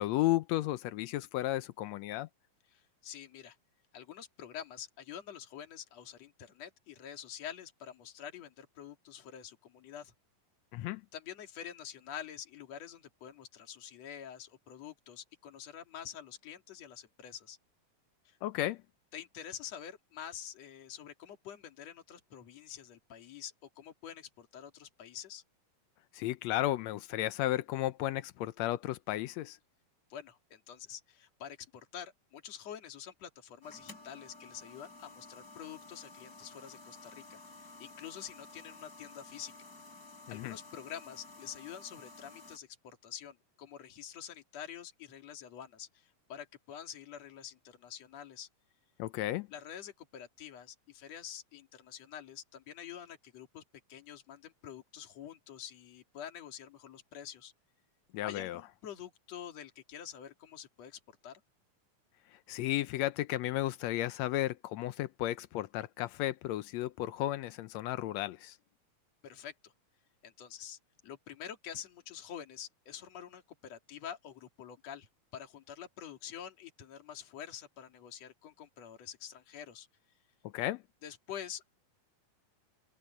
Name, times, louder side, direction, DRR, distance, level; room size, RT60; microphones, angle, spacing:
voice 1, 0.0-2.3 10.7-11.0 18.4-18.8 26.1-29.6 40.3-40.6 49.0-49.5 58.1-58.6 62.3-68.6 80.4-80.8, left 15 dB, 90° left, 1.5 m, -33 dB
voice 2, 2.7-3.6 3.9-10.1 11.1-17.6 18.2-18.4 19.1-25.4 30.1-39.5 40.3-48.5 49.5-53.6 53.9-57.5 58.2-61.4 69.2-69.7 70.2-79.9 81.0-81.8, left 9 dB, 50° left, 3.4 m, -47 dB
sound 1, 33.6-42.6, left 3 dB, 25° left, 4.3 m, -53 dB
open air
omnidirectional pair, 3.9 m